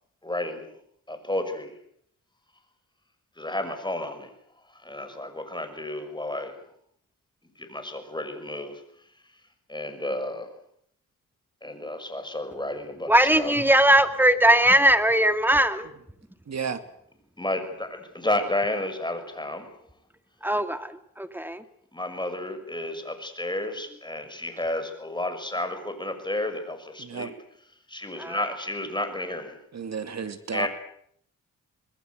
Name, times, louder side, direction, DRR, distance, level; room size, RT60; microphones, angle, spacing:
voice 1, 0.2-0.7 1.1-1.8 3.4-4.3 4.7-6.5 7.6-8.8 9.7-10.5 11.6-14.0 17.4-19.7 21.9-27.3 27.9-29.6 30.5-30.7, left 1 dB, 15° left, 6.2 m, -31 dB
voice 2, 13.1-15.9 20.4-21.6 28.2-28.4, right 1 dB, 5° right, 2.5 m, -20 dB
voice 3, 16.5-16.8 27.0-27.3 29.7-30.7, right 6 dB, 55° right, 2.7 m, -32 dB
25.5 x 20.5 x 8.1 m
cardioid pair, 75°, 33 cm